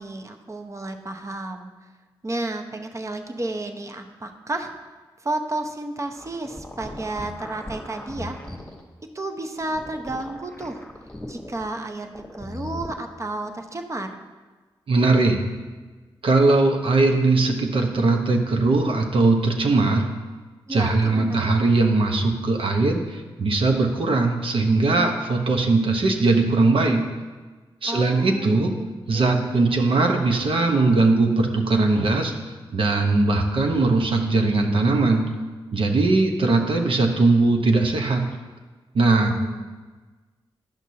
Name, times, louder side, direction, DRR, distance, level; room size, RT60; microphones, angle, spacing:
voice 1, 0.0-1.7 2.2-4.7 5.2-8.4 9.1-10.8 11.3-14.1 20.7-21.5 27.9-28.9 29.1-29.8 39.2-39.7, right 2 dB, 30° right, 5 dB, 0.7 m, -32 dB
sound 1, 6.0-8.8 9.5-11.7 12.0-12.9, left 2 dB, 10° left, 1.3 m, -38 dB
voice 2, 14.9-15.4 16.2-20.1 20.7-27.0 27.8-28.7 29.1-32.3 32.7-35.2 35.7-38.2 38.9-39.3, right 3 dB, 65° right, 3 dB, 0.9 m, -20 dB
10.5 x 6.0 x 2.8 m, 1.3 s
cardioid pair, 50°, 10 cm